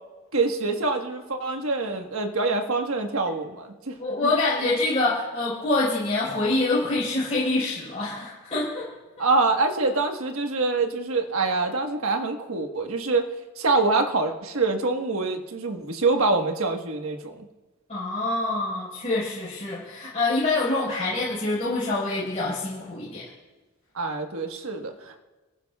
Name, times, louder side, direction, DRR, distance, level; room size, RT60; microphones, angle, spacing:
voice 1, 0.3-3.9 4.2-4.3 9.2-17.4 23.9-25.2, right 3 dB, 80° right, 4 dB, 1.4 m, -25 dB
voice 2, 4.0-8.9 17.9-23.3, left 2 dB, 30° left, -8 dB, 4.6 m, -26 dB
28.0 x 15.0 x 2.4 m, 1.2 s
head